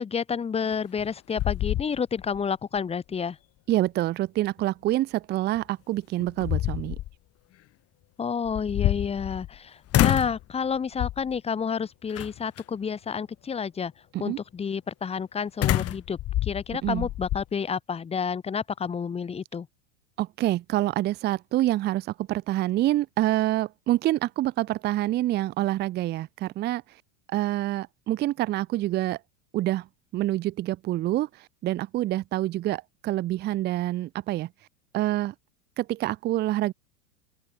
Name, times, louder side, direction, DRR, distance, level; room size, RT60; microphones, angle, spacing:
voice 1, 0.0-3.4 8.2-13.9 14.2-19.7, left 6 dB, 15° left, 1.2 m, -30 dB
sound 1, 0.7-1.1 1.4-2.4 2.8-2.9 5.5-5.6 6.2-7.1 8.4-9.6 9.9-10.4 11.0-11.4 12.1-12.6 15.6-17.4, left 14 dB, 40° left, 3.2 m, -27 dB
voice 2, 3.7-7.0 14.1-14.4 16.8-17.1 20.2-26.8 27.3-29.2 29.5-29.9 30.1-34.5 34.9-35.3 35.8-36.7, right 15 dB, 25° right, 0.6 m, -27 dB
open air
supercardioid pair, 125°, 38 cm